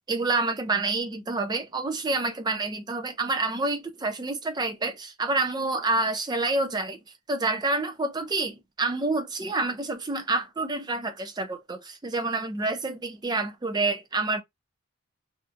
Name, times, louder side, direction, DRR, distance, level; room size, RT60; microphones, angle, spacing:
voice 1, 0.1-7.0 7.3-14.4, right 3 dB, 20° right, 0.4 m, -28 dB
2.8 x 2.3 x 2.4 m
head